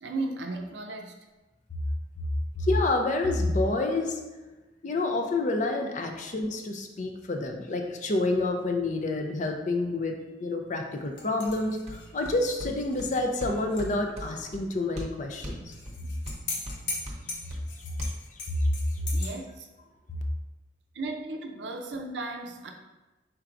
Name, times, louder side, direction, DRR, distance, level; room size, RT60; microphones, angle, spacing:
voice 1, 0.0-1.1 6.1-6.2 19.1-19.7 20.9-22.7, right 2 dB, 70° right, 3 dB, 0.6 m, -35 dB
voice 2, 2.6-4.2 4.8-15.7 18.0-18.1 18.6-18.7, left 2 dB, 40° left, 4 dB, 0.5 m, -28 dB
sound 1, 11.2-13.9 14.2-14.3 15.7-19.3, left 3 dB, 75° left, 0.9 m, -39 dB
sound 2, 11.5-18.1, equal, 35° right, 0.7 m, -42 dB
4.6 x 4.4 x 2.5 m, 1.1 s
head